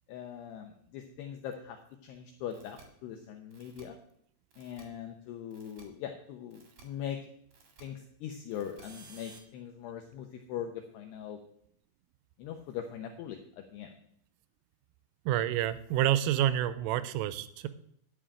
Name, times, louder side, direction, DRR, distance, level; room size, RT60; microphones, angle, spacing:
voice 1, 0.1-1.8 2.0-4.0 4.6-7.3 7.8-11.4 12.4-14.0, left 9 dB, 85° left, 4 dB, 2.3 m, -41 dB
sound 1, 2.5-2.8 3.5-3.8 4.5-4.8 5.5-5.8 6.5-6.8 7.5-7.8 8.5-9.4, right 5 dB, 60° right, 1.9 m, -55 dB
voice 2, 15.3-17.7, right 12 dB, 85° right, 14 dB, 3.2 m, -28 dB
11.0 x 5.6 x 8.7 m, 0.69 s
omnidirectional pair, 5.8 m